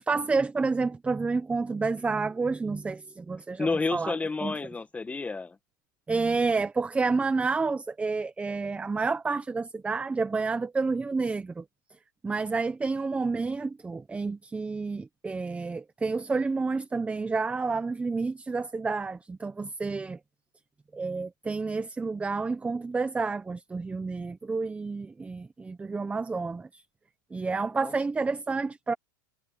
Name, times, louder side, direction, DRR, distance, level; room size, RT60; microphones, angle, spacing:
voice 1, 0.0-4.2 4.4-4.6 6.1-11.6 12.2-20.2 20.9-26.8 27.3-28.9, right 4 dB, 10° right, 1.1 m, -29 dB
voice 2, 3.6-5.6 27.8-27.9, left 3 dB, 10° left, 1.9 m, -30 dB
hypercardioid pair, 120°, 11 cm